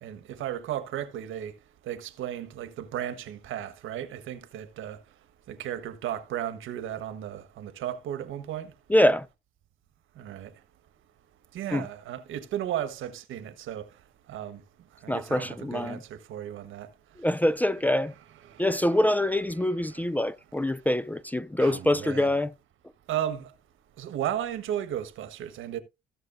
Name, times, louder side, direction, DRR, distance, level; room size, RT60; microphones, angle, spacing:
voice 1, 0.0-1.5 1.9-5.0 5.5-8.7 10.2-10.5 11.5-13.9 14.3-14.6 15.0-16.9 18.4-19.0 19.5-20.0 21.6-22.3 23.1-23.5 24.0-25.8, right 11 dB, 85° right, 1.3 m, -35 dB
voice 2, 8.9-9.3 11.7-11.8 15.1-16.0 17.2-18.1 18.6-22.5, left 1 dB, 10° left, 0.4 m, -25 dB
16.5 x 6.4 x 2.6 m
cardioid pair, 90°, 20 cm